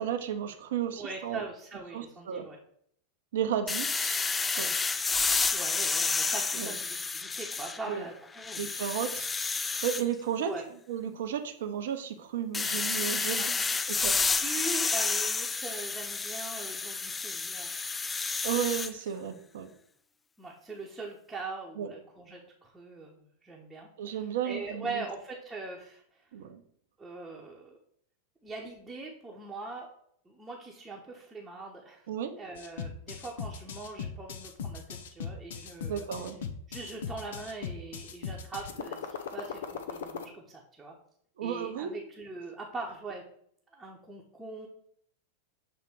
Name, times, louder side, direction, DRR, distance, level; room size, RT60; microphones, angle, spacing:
voice 1, 0.0-1.4 1.9-2.5 3.3-4.3 4.6-4.7 6.6-6.7 7.9-8.0 8.6-9.3 9.8-10.5 10.9-13.5 13.9-14.2 18.4-19.7 21.8-21.9 24.0-25.0 26.3-26.6 32.1-32.4 35.9-36.4 41.4-41.9, right 9 dB, 55° right, 7 dB, 0.8 m, -33 dB
voice 2, 1.0-2.6 5.5-8.7 10.4-10.6 13.4-13.9 14.3-17.8 20.4-26.3 27.0-27.8 28.4-29.9 30.2-32.1 32.4-36.1 36.7-41.0 41.4-43.2 43.7-44.7, right 3 dB, 10° right, -3 dB, 1.1 m, -42 dB
sound 1, 3.7-8.0 8.4-10.0 12.5-18.9, left 4 dB, 15° left, 0.3 m, -30 dB
sound 2, 32.5-40.2, left 7 dB, 60° left, 0.7 m, -38 dB
7.2 x 3.4 x 4.5 m, 0.66 s
figure-of-eight pair, 90°, 0 cm